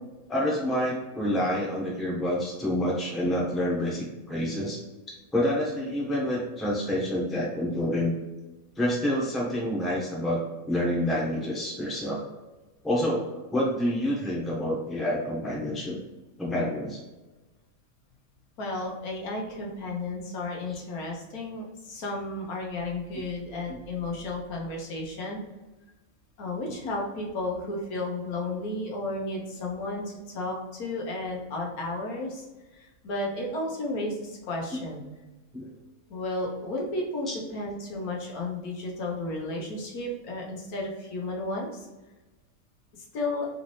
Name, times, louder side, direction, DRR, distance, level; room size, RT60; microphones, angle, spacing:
voice 1, 0.3-4.8 5.3-8.2 8.8-10.4 10.7-12.2 12.8-16.0 16.4-17.0 23.1-23.2 34.7-34.9 35.5-35.7 37.3-37.4, left 1 dB, ahead, -4 dB, 0.7 m, -28 dB
voice 2, 18.6-25.4 26.4-32.4 32.7-35.0 36.1-41.9 42.9-43.5, left 2 dB, 90° left, -1 dB, 1.4 m, -33 dB
4.0 x 2.7 x 3.1 m, 1.1 s
omnidirectional pair, 1.5 m